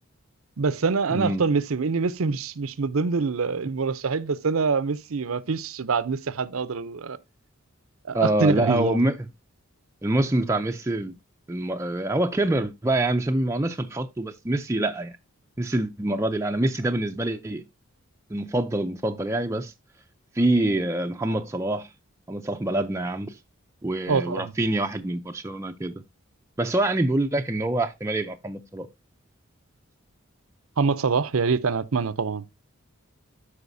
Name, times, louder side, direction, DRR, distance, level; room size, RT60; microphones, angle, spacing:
voice 1, 0.6-7.2 8.0-9.1 24.1-24.5 30.8-32.4, right 4 dB, 80° right, 0.6 m, -25 dB
voice 2, 1.1-1.5 8.1-9.2 10.0-11.2 11.5-15.2 15.6-17.6 18.3-19.7 20.3-21.9 22.3-23.4 23.8-25.9 26.6-28.9, right 1 dB, 15° right, 0.4 m, -25 dB
13.0 x 4.9 x 2.6 m
head